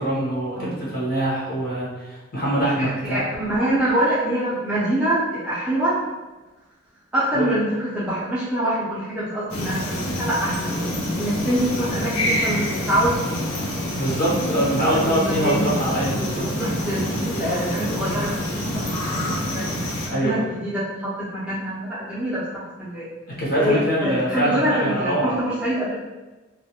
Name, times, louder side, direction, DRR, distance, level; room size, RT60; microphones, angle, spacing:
voice 1, 0.0-3.2 7.3-7.5 13.9-16.4 20.1-20.4 23.4-25.4, right 1 dB, 45° left, -7 dB, 0.8 m, -24 dB
voice 2, 3.1-5.9 7.1-10.7 11.2-13.1 14.5-15.7 16.2-18.4 19.1-19.2 19.5-19.6 20.1-23.1 23.6-26.0, right 1 dB, 5° right, -10 dB, 0.4 m, -25 dB
sound 1, 9.5-20.1, equal, 85° left, 0.6 m, -26 dB
2.2 x 2.1 x 2.8 m, 1.2 s
head